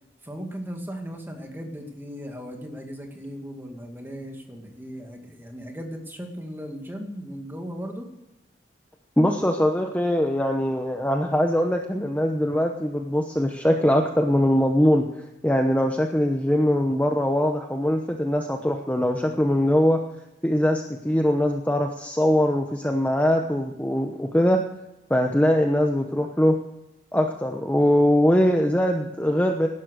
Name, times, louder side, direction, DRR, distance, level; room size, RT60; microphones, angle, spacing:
voice 1, 0.2-8.1, equal, 10° right, 3 dB, 2.2 m, -37 dB
voice 2, 9.2-20.0 20.4-24.6 25.1-26.5 27.1-29.7, equal, 10° left, 3 dB, 0.9 m, -22 dB
17.5 x 12.0 x 6.5 m, 0.92 s
head